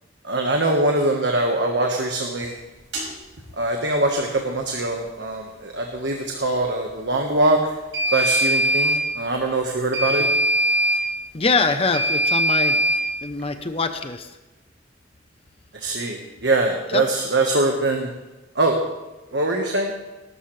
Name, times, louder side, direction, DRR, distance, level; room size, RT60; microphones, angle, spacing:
voice 1, 0.2-2.5 3.6-7.7 8.1-10.3 15.7-18.1 18.5-18.8 19.3-19.9, right 2 dB, 70° right, 2 dB, 1.4 m, -22 dB
sound 1, 2.9-3.1 7.9-9.0 9.9-11.0 11.9-13.0, equal, 90° right, 5.4 m, -20 dB
voice 2, 11.3-12.8 13.2-14.3 16.9-17.0, left 3 dB, 30° left, 8 dB, 0.7 m, -23 dB
19.5 x 12.5 x 3.3 m, 1.1 s
head